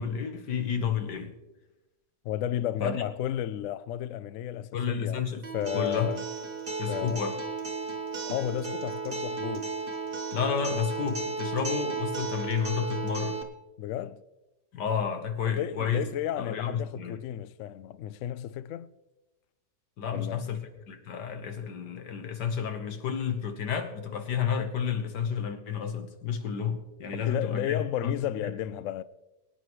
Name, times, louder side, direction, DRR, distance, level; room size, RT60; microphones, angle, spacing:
voice 1, 0.0-1.3 2.8-3.0 4.7-5.4 5.7-6.1 6.8-7.4 10.3-13.4 14.7-16.0 16.4-17.2 20.0-28.1 28.4-28.5, left 7 dB, 70° left, 1.8 m, -31 dB
voice 2, 2.2-5.2 5.5-6.2 6.9-7.2 8.2-9.8 13.8-14.2 15.5-18.9 20.1-20.5 27.1-29.0, left 11 dB, 90° left, 0.7 m, -33 dB
Acoustic guitar, 5.4-13.4, right 4 dB, 35° right, 1.2 m, -34 dB
23.5 x 9.5 x 3.1 m
omnidirectional pair, 1.9 m